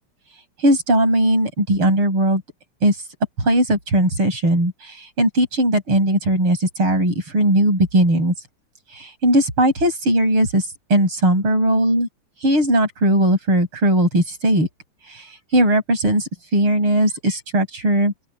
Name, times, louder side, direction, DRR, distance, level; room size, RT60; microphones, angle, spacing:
voice 1, 0.6-2.4 2.8-3.1 3.4-8.3 8.9-12.1 12.4-14.7 15.0-18.1, right 1 dB, 80° right, 8.6 m, -18 dB
open air
omnidirectional pair, 2.4 m